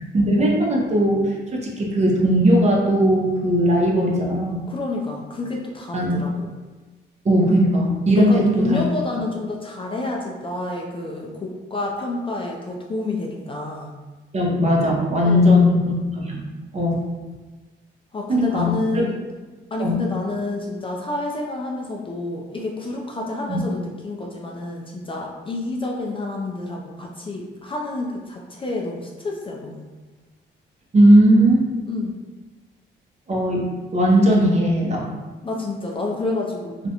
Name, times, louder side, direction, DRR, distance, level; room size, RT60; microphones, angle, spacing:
voice 1, 0.1-4.6 5.9-6.2 7.2-8.8 14.3-16.4 16.7-17.0 18.3-19.0 19.8-20.0 23.5-23.6 30.9-31.7 33.3-33.7 33.9-35.1, equal, 35° right, -2 dB, 0.6 m, -18 dB
voice 2, 4.7-6.5 8.1-13.9 15.2-15.6 18.1-19.2 19.7-29.9 31.9-32.2 35.4-36.8, left 2 dB, 25° left, -1 dB, 0.3 m, -29 dB
2.4 x 2.1 x 2.8 m, 1.3 s
cardioid pair, 90°, 20 cm